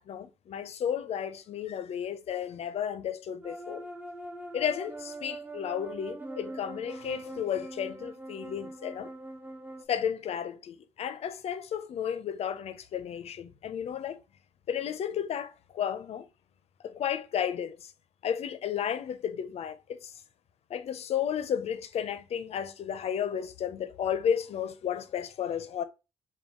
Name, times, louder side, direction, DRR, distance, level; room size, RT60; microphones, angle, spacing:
voice 1, 0.0-3.8 4.5-9.1 9.9-14.2 14.7-16.3 16.8-17.9 18.2-20.1 20.7-25.8, left 8 dB, 60° left, 0.5 m, -33 dB
sound 1, 3.4-9.8, right 1 dB, 15° right, 0.5 m, -42 dB
3.5 x 2.2 x 3.6 m
cardioid pair, 75°, 12 cm